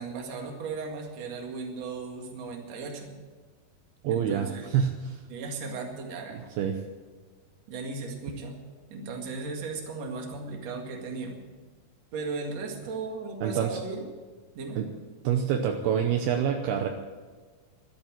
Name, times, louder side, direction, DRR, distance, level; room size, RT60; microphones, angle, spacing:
voice 1, 0.0-3.1 4.1-4.7 5.3-6.4 7.7-8.6 8.9-11.4 12.1-14.0 14.6-14.8, right 4 dB, 50° right, 1 dB, 2.6 m, -36 dB
voice 2, 4.0-5.2 6.3-6.8 13.4-13.8 14.8-14.9 15.2-16.9, right 8 dB, 75° right, 4 dB, 2.7 m, -27 dB
12.5 x 12.0 x 7.5 m, 1.4 s
omnidirectional pair, 4.9 m